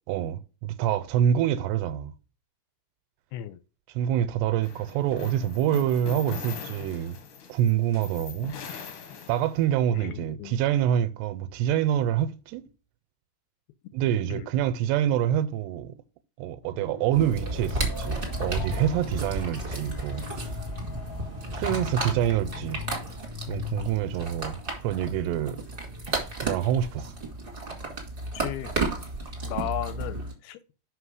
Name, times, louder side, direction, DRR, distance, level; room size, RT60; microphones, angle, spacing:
voice 1, 0.1-2.1 4.0-7.2 7.5-8.6 9.3-12.7 13.9-16.0 16.4-20.6 21.5-22.8 23.5-25.6 26.4-27.1, right 10 dB, 90° right, 2.7 m, -26 dB
sound 1, 4.6-9.8, left 7 dB, 60° left, 2.3 m, -41 dB
voice 2, 9.9-10.6 14.1-14.5 28.3-28.7 29.4-30.6, left 12 dB, 85° left, 2.6 m, -35 dB
sound 2, 16.6-23.2, left 2 dB, 40° left, 1.9 m, -45 dB
sound 3, 17.1-30.3, right 1 dB, 30° right, 0.9 m, -33 dB
6.0 x 5.6 x 4.8 m
omnidirectional pair, 4.7 m